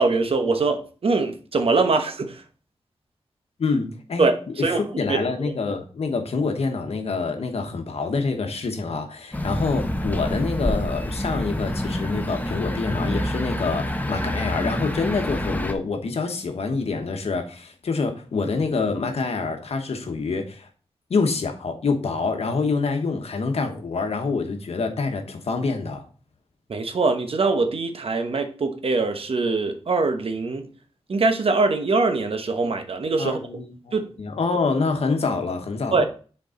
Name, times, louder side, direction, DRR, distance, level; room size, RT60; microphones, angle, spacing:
voice 1, 0.0-2.4 4.2-4.8 5.1-5.2 26.7-30.7 31.1-33.4 33.9-34.1 35.9-36.1, right 3 dB, 65° right, 1.0 m, -22 dB
voice 2, 3.6-4.3 4.6-20.7 21.1-26.0 33.2-36.1, left 4 dB, 80° left, 1.1 m, -26 dB
sound 1, 9.3-15.7, left 1 dB, 15° left, 0.9 m, -27 dB
6.7 x 4.6 x 3.8 m
cardioid pair, 65°, 10 cm